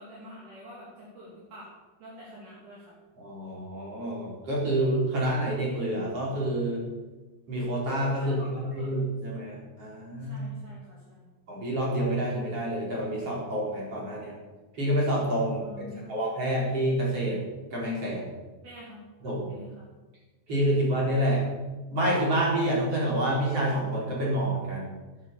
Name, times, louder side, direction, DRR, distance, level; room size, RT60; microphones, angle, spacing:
voice 1, 0.0-1.7 2.0-2.9 8.2-9.0 10.3-11.3 15.6-16.2 18.6-19.0 19.5-19.9, equal, 60° right, -6 dB, 4.5 m, -46 dB
voice 2, 3.2-6.8 7.5-10.4 11.5-14.3 14.7-15.6 15.9-17.4 17.7-18.3 19.2-19.5 20.5-21.4 21.9-25.0, right 1 dB, 40° right, -4 dB, 5.0 m, -28 dB
12.5 x 10.5 x 7.1 m, 1.2 s
omnidirectional pair, 4.2 m